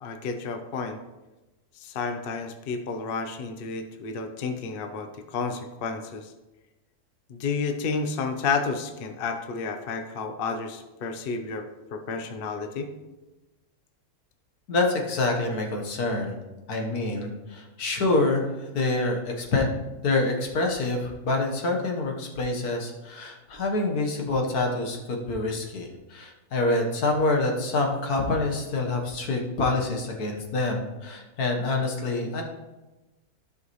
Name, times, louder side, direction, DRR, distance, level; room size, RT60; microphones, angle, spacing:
voice 1, 0.0-1.0 1.8-6.3 7.3-12.9, left 4 dB, 50° left, 6 dB, 0.8 m, -31 dB
voice 2, 14.7-16.4 16.7-19.7 20.0-32.4, left 2 dB, 85° left, 2 dB, 1.8 m, -26 dB
13.5 x 5.6 x 3.2 m, 1.1 s
omnidirectional pair, 1.6 m